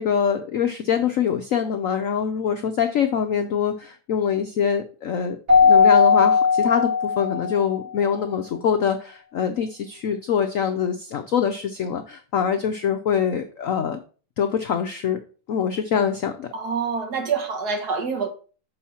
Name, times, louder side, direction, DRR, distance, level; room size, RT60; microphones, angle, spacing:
voice 1, 0.0-14.0 14.4-15.2 15.5-16.5, left 7 dB, 85° left, 0.7 m, -24 dB
Keyboard (musical), 5.5-7.7, left 5 dB, 30° right, 3.8 m, -17 dB
voice 2, 16.5-18.3, right 5 dB, 55° right, 1.6 m, -26 dB
7.1 x 5.5 x 4.2 m
omnidirectional pair, 2.2 m